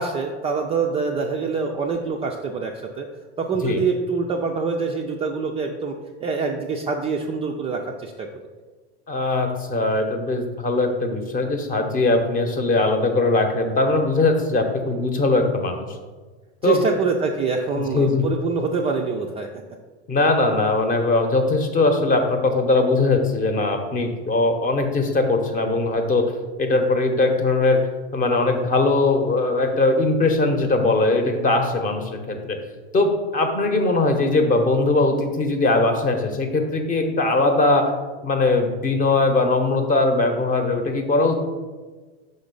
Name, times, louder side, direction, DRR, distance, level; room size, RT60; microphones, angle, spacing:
voice 1, 0.0-3.1 3.4-8.3 16.6-19.6, right 4 dB, 20° right, 1 dB, 0.4 m, -25 dB
voice 2, 9.1-16.0 16.6-16.8 17.7-18.2 20.1-26.2 26.6-27.8 28.1-32.6 32.9-37.9 38.2-41.4, left 2 dB, 25° left, 5 dB, 0.9 m, -20 dB
5.6 x 3.9 x 5.2 m, 1.4 s
hypercardioid pair, 115°, 34 cm